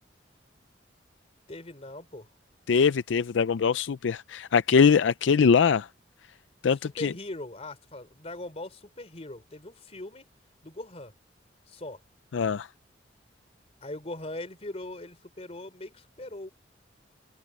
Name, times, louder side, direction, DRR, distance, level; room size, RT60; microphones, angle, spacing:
voice 1, 1.5-2.3 6.8-10.2 10.6-11.1 11.7-12.0 13.8-16.5, left 2 dB, 35° left, 3.3 m, -40 dB
voice 2, 2.7-5.9 6.6-7.1 12.3-12.7, left 6 dB, 80° left, 0.4 m, -22 dB
head